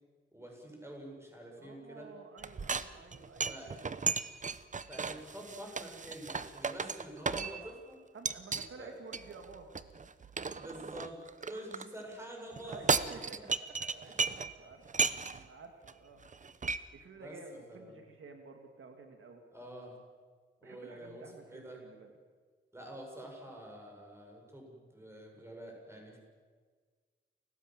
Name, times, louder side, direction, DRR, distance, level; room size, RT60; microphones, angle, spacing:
voice 1, 0.3-2.1 3.5-3.8 4.9-8.0 8.8-8.9 10.5-13.0 17.2-18.0 19.5-20.0 20.6-21.8 22.7-26.2, right 1 dB, 10° right, 0 dB, 6.9 m, -47 dB
voice 2, 1.6-4.2 8.1-9.7 12.6-14.8 15.4-16.2 16.9-19.4 20.6-22.1, right 4 dB, 80° right, 4 dB, 2.4 m, -52 dB
sound 1, 2.4-7.8 8.3-8.7 9.1-11.9 12.5-14.5 14.9-15.5 15.9-16.0 16.2-16.8, right 5 dB, 35° right, 0.8 m, -35 dB
29.5 x 16.0 x 7.6 m, 1.6 s
wide cardioid pair, 110°, 21 cm